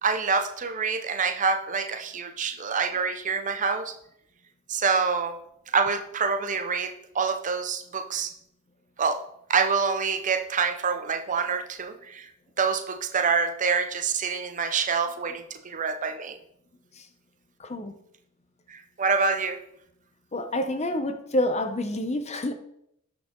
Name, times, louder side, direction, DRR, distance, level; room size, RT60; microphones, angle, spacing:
voice 1, 0.0-3.9 4.7-5.4 5.7-8.3 9.0-9.2 9.5-12.2 12.6-16.4 18.7-19.6, right 5 dB, 35° right, 9 dB, 0.6 m, -26 dB
voice 2, 17.6-18.0 20.3-22.5, left 1 dB, 30° left, 8 dB, 0.7 m, -28 dB
9.8 x 6.1 x 3.8 m, 0.74 s
head